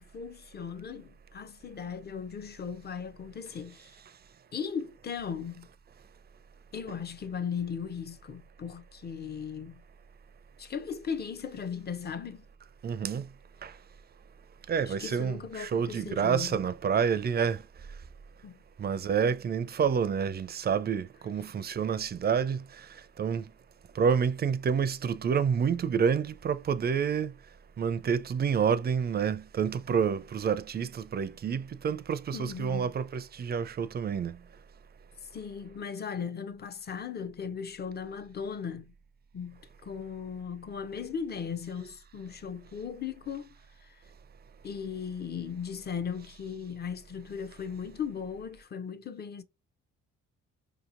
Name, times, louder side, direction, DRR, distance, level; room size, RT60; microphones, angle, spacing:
voice 1, 0.0-4.0 4.5-5.7 6.7-9.8 10.6-12.5 14.9-16.6 18.4-18.6 32.3-32.9 35.2-38.9 39.3-43.5 43.8-44.0 44.6-49.4, left 6 dB, 35° left, 0.6 m, -37 dB
voice 2, 12.8-13.3 13.6-13.7 14.7-17.6 18.8-22.9 23.2-23.4 23.9-27.3 27.8-34.4, right 7 dB, 35° right, 0.4 m, -28 dB
4.8 x 2.9 x 2.5 m
cardioid pair, 90°, 30 cm